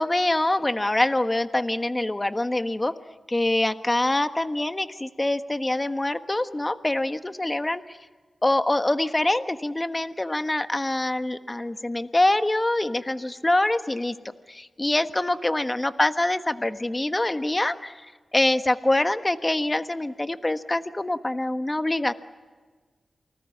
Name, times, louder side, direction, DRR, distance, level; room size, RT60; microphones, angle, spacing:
voice 1, 0.0-2.9 3.3-8.0 8.4-22.1, left 1 dB, 20° left, 11 dB, 1.3 m, -25 dB
28.5 x 20.0 x 8.5 m, 1.4 s
cardioid pair, 70°, 0 cm